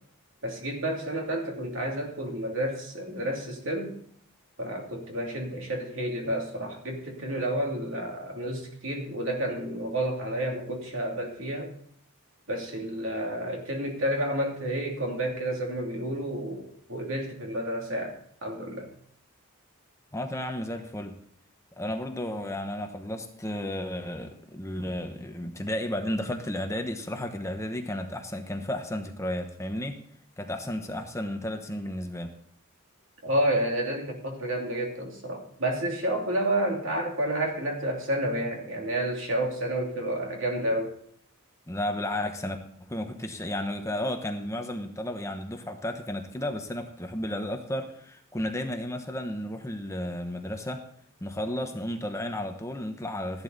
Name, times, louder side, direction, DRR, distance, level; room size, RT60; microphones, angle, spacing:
voice 1, 0.4-3.9 4.6-11.7 12.5-18.9 33.2-41.0, right 1 dB, 65° right, 1 dB, 2.9 m, -30 dB
voice 2, 20.1-21.2 21.8-30.0 30.4-32.3 41.7-42.6 42.9-50.9 51.2-53.4, left 1 dB, 15° left, 5 dB, 1.0 m, -33 dB
14.5 x 11.0 x 4.1 m, 0.63 s
head